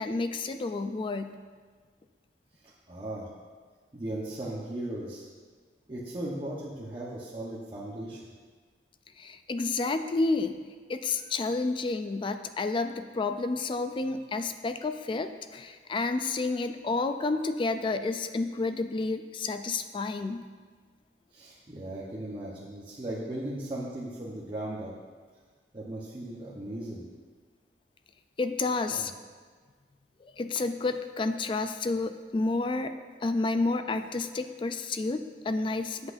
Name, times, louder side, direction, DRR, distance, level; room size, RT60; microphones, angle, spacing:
voice 1, 0.0-1.3 9.2-10.6 10.9-20.4 28.4-29.1 30.2-33.0 33.2-36.1, left 3 dB, 30° left, 9 dB, 0.3 m, -30 dB
voice 2, 2.6-3.3 3.9-5.3 5.9-8.2 10.4-10.5 21.3-24.9 25.7-27.0 28.9-29.1, right 1 dB, 30° right, -6 dB, 1.0 m, -37 dB
13.5 x 8.2 x 2.6 m, 1.5 s
head